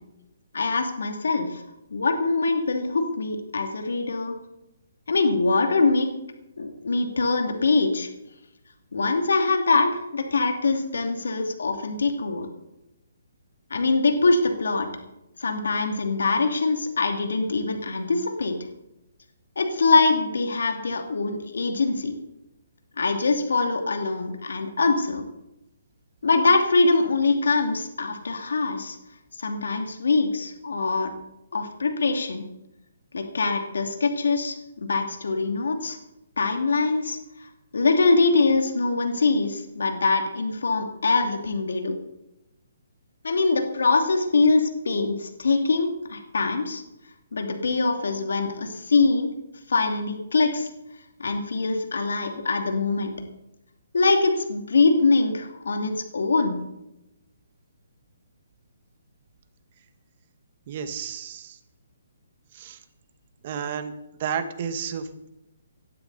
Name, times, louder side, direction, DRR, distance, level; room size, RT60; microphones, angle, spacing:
voice 1, 0.5-1.6 1.9-4.3 5.1-6.1 6.6-8.1 8.9-12.5 13.7-14.9 15.4-18.6 19.6-22.1 23.0-25.2 26.2-29.0 29.4-31.1 31.5-32.4 33.1-36.0 36.4-37.2 37.7-42.0 43.2-46.8 47.3-49.3 49.7-50.7 51.2-53.1 53.9-56.6, left 3 dB, 80° left, 4 dB, 2.7 m, -23 dB
voice 2, 60.7-61.6 62.5-62.8 63.4-63.9 64.2-65.3, right 7 dB, 40° right, 9 dB, 1.6 m, -31 dB
19.0 x 12.5 x 4.2 m, 0.90 s
hypercardioid pair, 155°, 0 cm